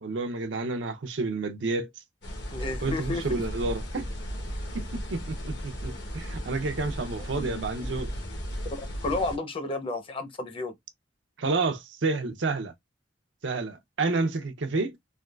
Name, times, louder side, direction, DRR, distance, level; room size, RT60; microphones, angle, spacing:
voice 1, 0.0-1.9 2.8-4.1 4.7-8.1 11.4-12.7 13.4-15.0, right 3 dB, 80° right, 0.6 m, -30 dB
sound 1, 2.2-9.4, equal, 70° left, 0.9 m, -35 dB
voice 2, 2.5-3.2 7.3-7.6 8.7-10.7, left 2 dB, 30° left, 0.6 m, -32 dB
3.5 x 2.2 x 2.3 m
head